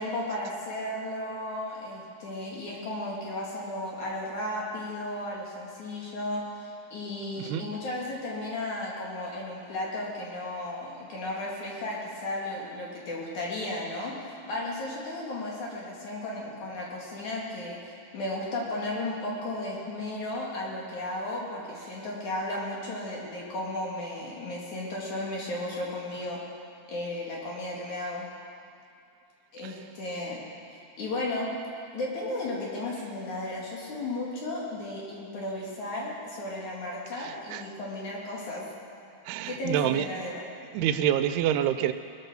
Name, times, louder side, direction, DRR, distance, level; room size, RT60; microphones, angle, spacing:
voice 1, 0.0-26.4 26.9-28.2 29.5-30.4 30.7-31.5 31.9-38.6 39.5-40.4, left 1 dB, 55° left, -4 dB, 3.5 m, -34 dB
voice 2, 7.4-7.7 29.6-29.7 37.2-37.6 39.3-40.1 40.7-41.9, right 10 dB, 85° right, 11 dB, 2.6 m, -27 dB
20.5 x 8.4 x 6.9 m, 2.5 s
omnidirectional pair, 4.5 m